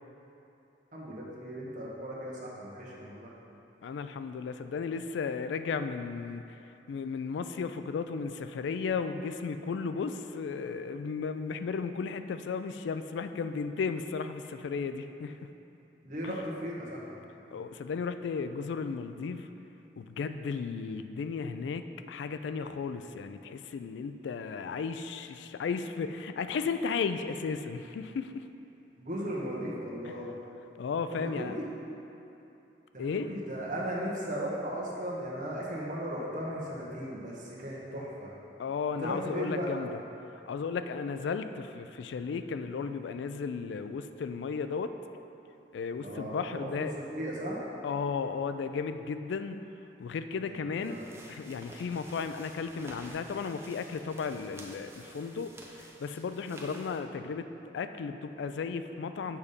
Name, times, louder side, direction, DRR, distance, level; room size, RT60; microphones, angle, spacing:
voice 1, 0.9-3.3 16.0-17.1 29.0-30.3 31.1-31.6 32.9-38.3 39.0-39.7 46.0-47.6 50.4-51.1, equal, 45° right, -5 dB, 1.2 m, -37 dB
voice 2, 3.8-6.4 6.9-15.4 16.2-16.3 17.5-19.5 20.0-28.4 30.8-31.5 33.0-33.3 38.6-39.9 40.5-44.9 45.7-46.9 47.8-49.6 50.0-51.0 51.3-55.5 55.8-57.5 57.7-59.4, left 5 dB, 80° left, 10 dB, 0.3 m, -34 dB
sound 1, 50.7-57.0, right 1 dB, 15° right, 0.5 m, -51 dB
7.1 x 4.1 x 5.1 m, 2.9 s
head